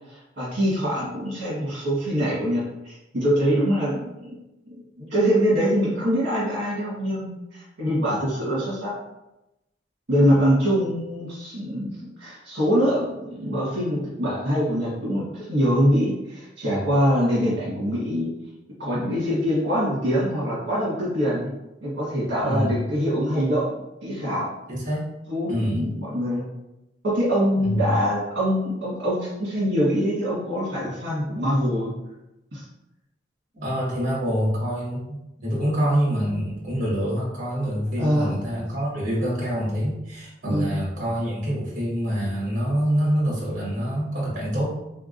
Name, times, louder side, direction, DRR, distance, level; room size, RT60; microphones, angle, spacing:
voice 1, 0.1-4.3 4.7-8.9 10.1-11.9 12.2-18.3 18.8-21.5 21.8-23.7 24.0-24.5 25.3-26.5 27.0-31.9 32.5-32.6 38.0-38.4 40.4-40.8, equal, 60° right, -8 dB, 1.5 m, -24 dB
voice 2, 22.4-22.8 24.7-25.1 25.5-25.9 27.6-27.9 33.5-44.8, equal, 45° right, -5 dB, 1.5 m, -26 dB
3.6 x 3.4 x 2.6 m, 0.92 s
head